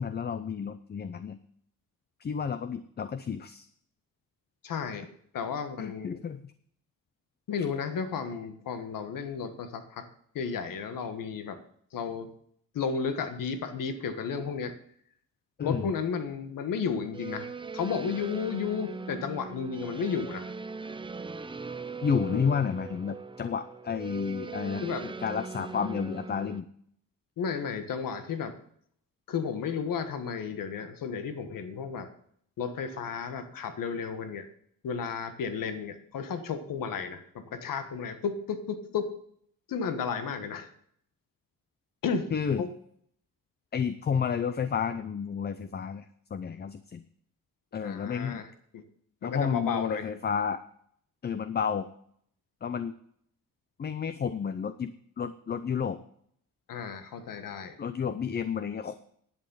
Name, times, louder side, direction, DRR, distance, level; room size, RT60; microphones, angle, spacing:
voice 1, 0.0-1.4 2.2-3.7 5.8-6.5 15.6-15.9 22.0-26.7 42.3-42.6 43.7-47.0 47.7-48.4 49.2-50.6 51.2-51.9 52.6-52.9 53.8-56.0 57.8-58.9, left 6 dB, 30° left, 12 dB, 0.5 m, -31 dB
voice 2, 4.6-6.1 7.5-10.1 10.3-11.6 11.9-12.3 12.7-14.7 15.6-20.5 22.3-22.4 24.8-25.0 27.4-28.5 29.3-32.1 32.6-34.5 34.8-39.1 39.7-40.7 42.0-42.3 42.6-42.7 47.8-48.5 48.7-48.8 49.2-50.1 56.7-57.8, left 6 dB, 75° left, 9 dB, 1.5 m, -33 dB
sound 1, 17.1-26.6, right 4 dB, 15° right, 0.5 m, -40 dB
11.0 x 8.6 x 5.5 m, 0.66 s
cardioid pair, 125°, 33 cm